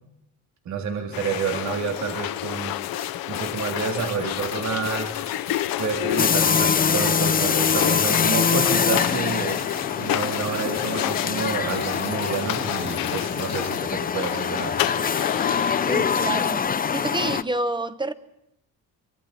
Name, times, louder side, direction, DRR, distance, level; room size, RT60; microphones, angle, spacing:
voice 1, 0.6-2.7 3.3-5.1 5.8-9.6 10.0-14.8, right 5 dB, 55° right, 3.3 m, -29 dB
sound 1, 1.1-16.5, left 15 dB, 90° left, 1.0 m, -30 dB
sound 2, 2.8-13.9, left 9 dB, 50° left, 2.0 m, -35 dB
sound 3, 6.2-17.4, left 6 dB, 25° left, 0.8 m, -24 dB
voice 2, 15.8-18.1, right 2 dB, 15° right, 1.1 m, -28 dB
26.5 x 24.5 x 4.4 m
cardioid pair, 135°, 34 cm